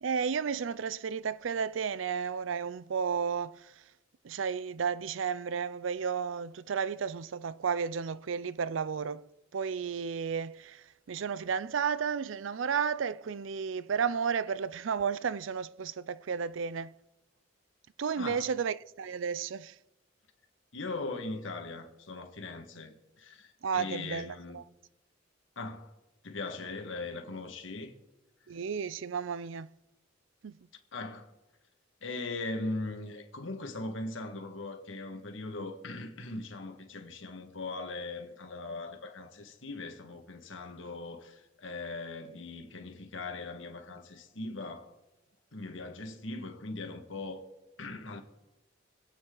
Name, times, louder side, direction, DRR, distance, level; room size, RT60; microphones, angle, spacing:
voice 1, 0.0-3.7 4.2-9.2 9.5-16.9 18.0-19.8 23.6-24.6 28.5-29.7 30.4-30.6, right 6 dB, 90° right, 0.5 m, -33 dB
voice 2, 20.7-24.6 25.6-25.9 26.2-27.9 30.9-31.3 32.0-44.9 45.5-47.4 47.8-48.2, left 2 dB, 90° left, 1.8 m, -40 dB
26.0 x 9.0 x 3.9 m
head